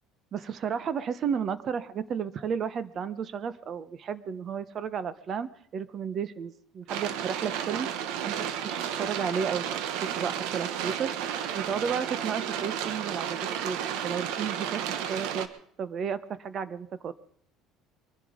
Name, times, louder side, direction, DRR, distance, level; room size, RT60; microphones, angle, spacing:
voice 1, 0.3-7.9 8.2-9.6 9.9-11.1 11.5-13.8 14.0-15.5 15.8-17.1, right 7 dB, 40° right, 14 dB, 1.1 m, -33 dB
sound 1, 6.9-15.5, right 9 dB, 80° right, 1.3 m, -32 dB
23.5 x 11.0 x 5.2 m, 0.66 s
cardioid pair, 125°, 0 cm